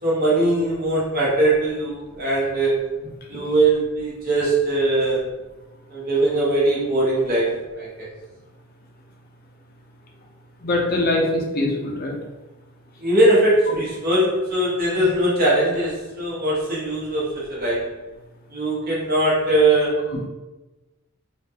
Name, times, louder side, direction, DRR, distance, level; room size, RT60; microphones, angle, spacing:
voice 1, 0.0-2.8 3.3-5.2 5.9-8.1 13.0-17.9 18.5-20.0, right 1 dB, 50° right, -6 dB, 1.2 m, -21 dB
voice 2, 10.6-12.2 13.7-13.8 15.0-15.1 20.1-20.3, left 2 dB, 45° left, -1 dB, 0.6 m, -23 dB
3.6 x 2.4 x 2.8 m, 1.1 s
head